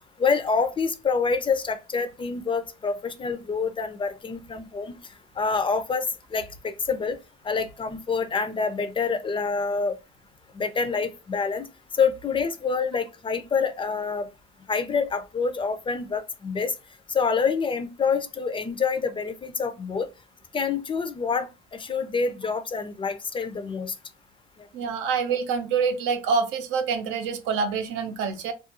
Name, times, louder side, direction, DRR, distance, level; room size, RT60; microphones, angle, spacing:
voice 1, 0.2-5.0 5.4-6.1 6.3-7.2 7.4-9.9 10.5-11.7 12.0-14.3 14.7-16.7 17.1-20.1 20.5-23.9, left 5 dB, 25° left, 0.4 m, -27 dB
voice 2, 24.7-28.5, right 5 dB, 80° right, 0.6 m, -26 dB
2.4 x 2.2 x 2.8 m
cardioid pair, 95°, 19 cm